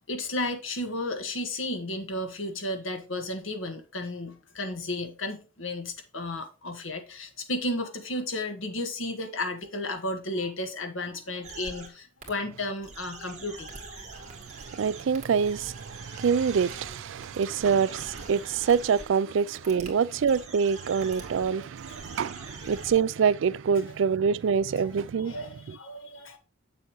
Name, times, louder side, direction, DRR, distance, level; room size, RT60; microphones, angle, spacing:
voice 1, 0.1-14.3 19.4-19.7 20.5-20.6 21.2-22.2 24.8-24.9 25.2-26.4, left 1 dB, 80° left, 1.7 m, -34 dB
sound 1, 11.4-11.9 12.2-12.3 12.8-19.0 19.5-19.9 20.2-23.0, right 3 dB, 35° right, 2.4 m, -44 dB
voice 2, 14.5-25.3, right 6 dB, 70° right, 0.4 m, -26 dB
7.9 x 7.0 x 3.0 m
head